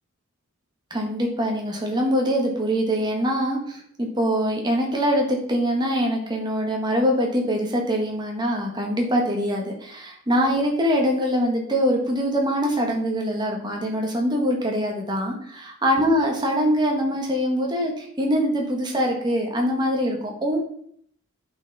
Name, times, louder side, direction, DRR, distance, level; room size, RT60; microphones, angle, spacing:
voice 1, 0.9-20.6, equal, 20° right, 0 dB, 1.6 m, -23 dB
8.8 x 5.7 x 4.2 m, 0.64 s
head